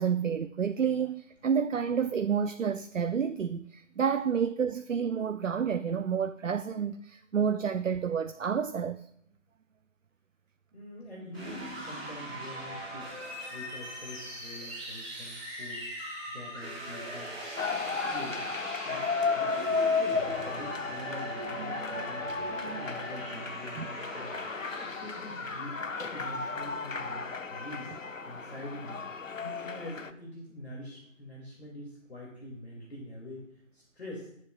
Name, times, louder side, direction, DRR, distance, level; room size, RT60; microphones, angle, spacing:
voice 1, 0.0-9.0 23.8-23.9, right 7 dB, 70° right, 0.6 m, -29 dB
voice 2, 10.7-13.1 13.5-17.4 17.9-18.4 18.8-24.4 24.7-25.8 26.1-27.9 28.3-29.0 29.4-34.3, left 1 dB, 50° left, 2.7 m, -45 dB
sound 1, 11.3-25.5, right 1 dB, ahead, 1.5 m, -41 dB
sound 2, 17.6-30.1, left 4 dB, 75° left, 0.9 m, -34 dB
21.0 x 7.4 x 2.5 m
figure-of-eight pair, 165°, 39 cm